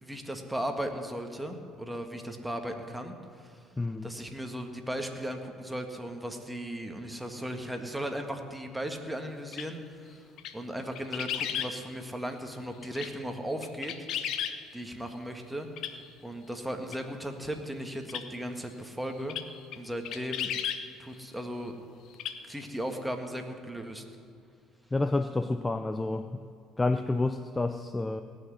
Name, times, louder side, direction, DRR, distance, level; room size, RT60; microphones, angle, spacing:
voice 1, 0.0-3.1 3.4-3.5 4.0-10.2 10.5-13.9 14.7-19.4 19.7-20.5 21.0-21.8 22.4-24.0, equal, 5° right, 4 dB, 1.8 m, -36 dB
voice 2, 3.8-4.1 24.9-26.4 26.8-28.2, left 2 dB, 15° left, 10 dB, 0.5 m, -29 dB
sound 1, 9.5-9.7 10.4-10.5 11.0-11.7 12.8-13.1 13.6-14.6 15.8-15.9 16.9-17.0 18.1-18.3 19.3-19.5 19.7-19.8 20.0-20.8 22.1-22.4 22.7-22.8, left 9 dB, 70° left, 0.9 m, -33 dB
17.5 x 6.4 x 9.7 m, 2.4 s
supercardioid pair, 80°, 0 cm